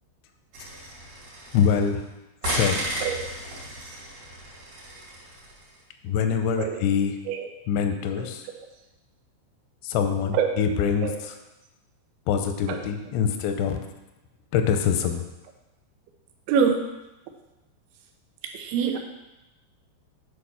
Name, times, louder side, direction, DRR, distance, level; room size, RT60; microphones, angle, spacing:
sound 1, 0.5-2.0 2.4-5.7, right 1 dB, 50° right, 3.6 m, -34 dB
voice 1, 1.5-2.0 2.5-2.9 6.0-7.2 7.7-8.5 9.8-11.1 12.3-13.8 14.5-15.3, left 7 dB, 85° left, 6 dB, 3.0 m, -24 dB
voice 2, 16.5-16.8 18.5-19.0, right 7 dB, 85° right, 4 dB, 3.2 m, -24 dB
8.6 x 4.9 x 5.8 m, 0.99 s
omnidirectional pair, 5.2 m